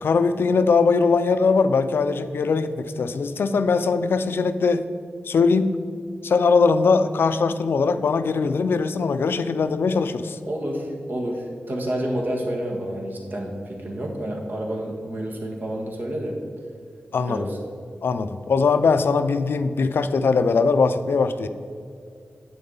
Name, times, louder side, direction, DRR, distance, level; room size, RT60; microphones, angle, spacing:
voice 1, 0.0-4.9 5.2-5.7 6.2-10.4 17.1-17.5 18.0-21.5, left 4 dB, 80° left, 11 dB, 0.4 m, -21 dB
voice 2, 10.5-16.4 17.3-17.6, right 1 dB, 60° right, 0 dB, 1.5 m, -29 dB
9.5 x 7.7 x 3.9 m, 2.4 s
cardioid pair, 65°, 4 cm